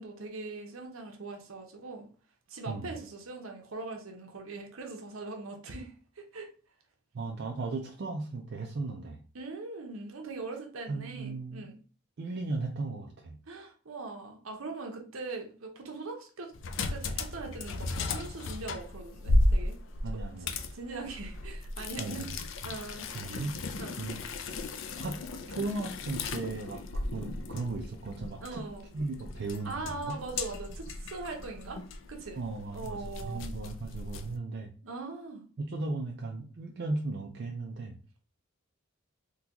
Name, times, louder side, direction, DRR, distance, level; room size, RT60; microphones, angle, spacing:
voice 1, 0.0-2.1 2.5-6.5 9.3-11.8 13.5-16.5 16.9-19.8 20.4-20.5 20.7-22.3 22.6-23.4 23.8-23.9 28.4-28.9 29.6-31.8 32.1-32.4 32.7-33.4 34.8-35.5, right 3 dB, 75° right, 3 dB, 0.8 m, -41 dB
voice 2, 7.1-9.2 10.9-11.7 12.2-13.4 20.0-20.5 22.0-22.3 22.6-24.2 25.0-25.2 25.5-28.7 28.9-30.2 32.4-34.7 35.6-38.0, right 3 dB, 50° right, 1 dB, 0.4 m, -36 dB
sound 1, 16.5-34.4, left 2 dB, 60° left, 0.4 m, -35 dB
3.8 x 2.3 x 2.8 m, 0.39 s
head